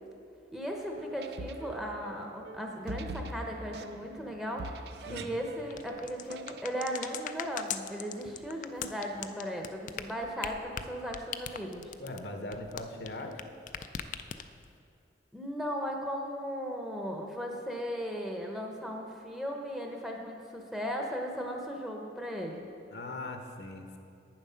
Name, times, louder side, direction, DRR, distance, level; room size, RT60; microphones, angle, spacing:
voice 1, 0.5-4.8 5.1-11.9 15.3-22.7, equal, ahead, 1 dB, 0.8 m, -37 dB
sound 1, 0.9-6.9, right 2 dB, 60° right, 0.4 m, -44 dB
sound 2, 5.7-13.4 13.7-14.7, left 9 dB, 45° left, 0.3 m, -39 dB
voice 2, 12.0-13.4 22.9-24.0, left 2 dB, 65° left, 4 dB, 0.8 m, -40 dB
8.9 x 7.3 x 5.7 m, 2.6 s
head